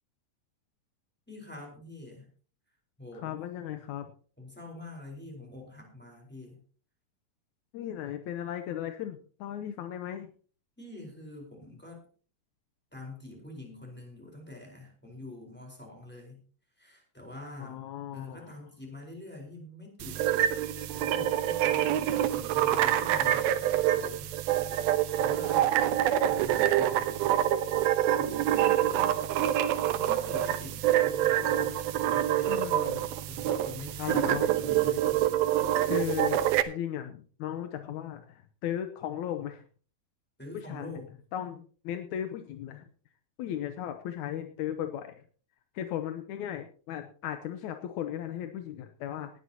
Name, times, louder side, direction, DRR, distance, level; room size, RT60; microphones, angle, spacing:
voice 1, 1.3-2.3 3.0-3.4 4.4-6.6 10.8-12.0 12.9-16.4 16.8-17.8 18.1-20.4 20.9-24.3 25.2-27.3 28.1-29.2 29.9-32.6 33.3-35.2 40.4-41.1, left 2 dB, 5° left, 0 dB, 4.0 m, -45 dB
voice 2, 3.2-4.1 7.7-10.3 17.6-18.5 32.5-33.1 34.0-34.5 35.9-39.6 40.5-41.0 41.3-42.9 43.4-45.2 45.8-49.3, left 10 dB, 75° left, 7 dB, 1.8 m, -36 dB
sound 1, 20.0-36.6, right 12 dB, 90° right, 2.7 m, -26 dB
18.5 x 12.5 x 2.9 m, 0.42 s
omnidirectional pair, 4.2 m